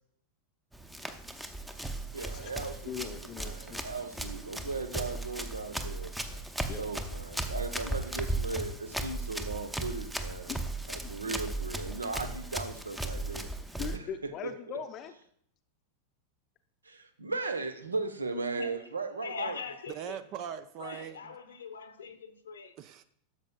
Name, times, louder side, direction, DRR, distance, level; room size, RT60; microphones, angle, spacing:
Run, 0.7-14.0, right 2 dB, 5° right, 0.7 m, -37 dB
voice 1, 1.1-1.4 2.3-2.5 2.9-3.8 6.7-6.8 10.5-10.6 11.2-11.4 13.8-15.1, left 8 dB, 35° left, 0.6 m, -40 dB
voice 2, 2.1-10.5 10.9-13.5 14.2-14.8 16.8-19.6, right 3 dB, 75° right, 0.8 m, -37 dB
voice 3, 19.2-20.2 20.8-22.7, left 5 dB, 70° left, 0.8 m, -41 dB
voice 4, 19.9-21.4 22.8-23.0, right 9 dB, 40° right, 0.4 m, -41 dB
12.5 x 6.8 x 2.3 m
figure-of-eight pair, 90°, 0 cm